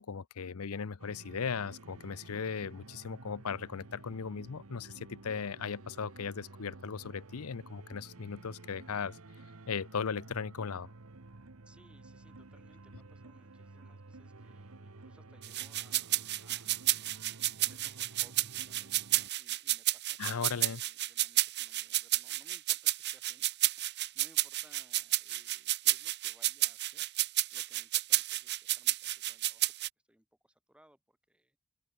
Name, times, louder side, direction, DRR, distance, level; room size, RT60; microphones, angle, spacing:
voice 1, 0.0-9.2 9.7-10.9 20.2-20.8, left 6 dB, 85° left, 0.6 m, -37 dB
sound 1, 1.0-19.3, right 2 dB, 75° right, 1.3 m, -52 dB
voice 2, 11.6-20.2 20.5-27.1 27.5-29.7 30.1-31.6, equal, 5° right, 7.1 m, -65 dB
sound 2, 15.4-29.9, right 16 dB, 50° right, 0.8 m, -31 dB
open air
head